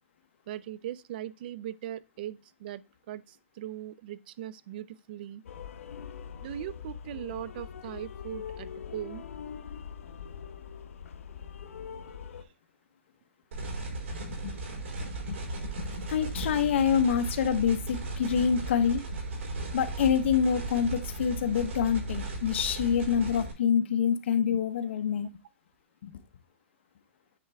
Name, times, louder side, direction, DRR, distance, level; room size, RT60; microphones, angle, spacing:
voice 1, 0.5-2.8 3.1-5.4 6.4-9.2, right 12 dB, 45° right, 0.5 m, -39 dB
sound 1, 5.4-12.4, left 7 dB, 80° left, 0.9 m, -42 dB
sound 2, 13.5-23.5, right 2 dB, 75° right, 4.7 m, -36 dB
voice 2, 13.7-14.6 14.9-19.0 19.7-25.3 26.0-26.2, left 7 dB, 60° left, 1.0 m, -27 dB
9.6 x 4.4 x 3.5 m
hypercardioid pair, 160°, 7 cm